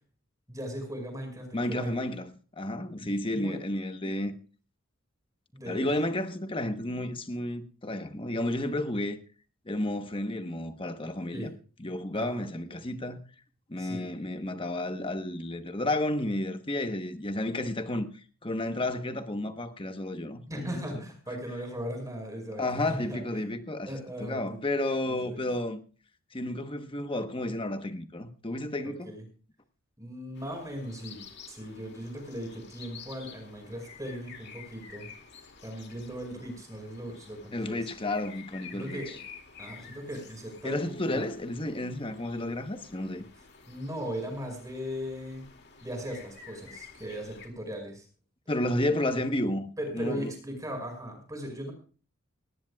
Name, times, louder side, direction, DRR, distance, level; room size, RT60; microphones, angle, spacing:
voice 1, 0.5-1.9 2.9-3.6 5.5-6.1 11.3-11.5 12.1-12.4 13.8-14.1 20.5-23.5 23.9-24.6 25.1-25.4 29.1-29.2 30.0-31.2 31.5-35.1 35.6-37.8 38.7-39.2 39.6-41.2 43.7-45.5 45.8-48.0 49.8-51.7, equal, 15° right, 5.3 m, -38 dB
voice 2, 1.5-2.3 2.6-4.3 5.7-9.2 9.7-11.5 11.8-13.2 13.7-18.1 18.4-20.9 22.6-23.9 24.2-25.8 26.3-29.1 37.5-39.2 40.6-43.2 48.5-50.3, left 1 dB, 25° left, 1.1 m, -32 dB
sound 1, 30.3-47.5, left 6 dB, 55° left, 2.4 m, -50 dB
18.5 x 18.5 x 2.4 m
head